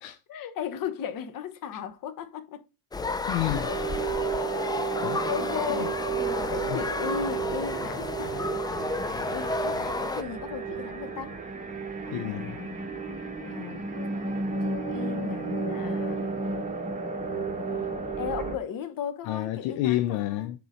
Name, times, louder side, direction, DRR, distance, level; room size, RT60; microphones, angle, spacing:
voice 1, 0.3-2.7 4.3-4.7 4.9-6.1 6.5-8.6 9.0-11.4 12.0-12.8 13.4-13.9 14.6-16.3 17.1-17.9 18.2-20.5, left 8 dB, 40° left, 1.0 m, -37 dB
sound 1, 2.9-10.2, left 3 dB, 10° left, 0.4 m, -32 dB
voice 2, 3.3-4.1 4.4-4.5 5.0-5.3 5.8-5.9 6.7-6.8 12.1-12.6 19.3-20.6, left 14 dB, 65° left, 0.7 m, -30 dB
sound 2, 3.5-18.6, right 4 dB, 15° right, 1.8 m, -32 dB
4.7 x 4.0 x 4.9 m
supercardioid pair, 85°, 50 cm